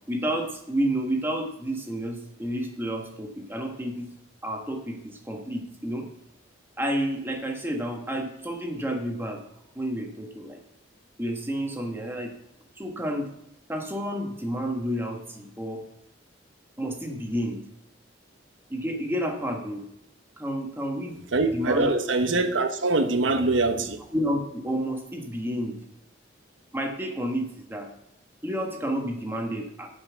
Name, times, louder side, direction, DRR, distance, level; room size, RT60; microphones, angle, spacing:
voice 1, 0.1-4.1 4.4-5.0 5.3-6.1 6.8-9.4 9.7-10.6 11.2-12.3 12.8-13.3 13.7-15.8 16.8-17.6 18.7-19.8 20.4-21.2 21.5-21.9 24.1-25.7 26.7-27.9 28.4-29.9, equal, 10° right, 1.4 m, -30 dB
voice 2, 21.3-24.0, right 3 dB, 85° right, 1.1 m, -23 dB
9.6 x 5.7 x 7.1 m
head